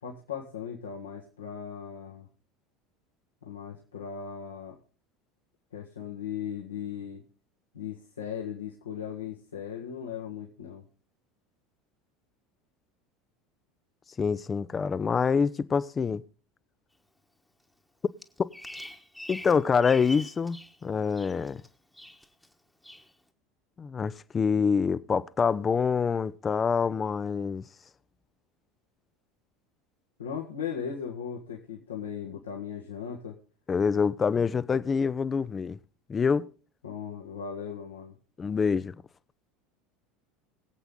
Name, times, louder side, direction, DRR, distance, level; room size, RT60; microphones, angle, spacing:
voice 1, 0.0-2.3 3.4-4.8 5.7-7.2 7.7-10.8 30.2-33.4 36.8-38.1, left 7 dB, 80° left, 1.6 m, -38 dB
voice 2, 14.2-16.2 18.4-18.5 19.3-21.6 23.8-27.6 33.7-35.8 36.1-36.5 38.4-38.9, left 5 dB, 25° left, 0.7 m, -26 dB
Bird vocalization bird call bird song, 18.2-20.8 21.0-21.7 21.9-22.5 22.8-23.1, left 1 dB, 5° left, 1.3 m, -43 dB
21.5 x 8.2 x 3.8 m
figure-of-eight pair, 70°, 0 cm